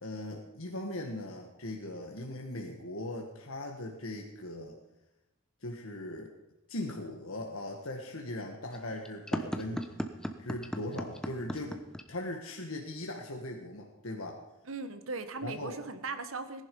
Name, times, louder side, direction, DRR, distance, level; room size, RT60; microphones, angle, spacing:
voice 1, 0.0-4.7 5.6-6.3 6.7-9.9 10.4-11.8 12.1-14.4 15.4-15.8, left 1 dB, 70° left, 0 dB, 1.7 m, -39 dB
sound 1, 8.7-12.0, equal, 5° left, 1.0 m, -36 dB
voice 2, 14.7-16.6, right 3 dB, 65° right, 10 dB, 1.3 m, -38 dB
19.0 x 11.0 x 5.4 m, 0.96 s
head